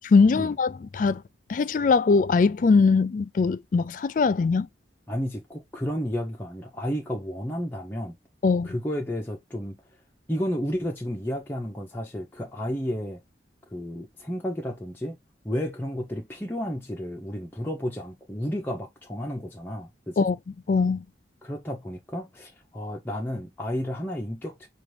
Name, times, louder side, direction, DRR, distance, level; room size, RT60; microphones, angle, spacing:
voice 1, 0.1-1.2 1.5-4.7 8.4-8.7 20.2-20.4 20.7-21.0, left 4 dB, 45° left, 0.3 m, -21 dB
voice 2, 5.1-8.2 8.6-9.8 10.3-13.2 13.7-15.2 15.4-20.3 21.4-24.7, equal, 10° left, 0.7 m, -32 dB
5.9 x 2.5 x 3.2 m
head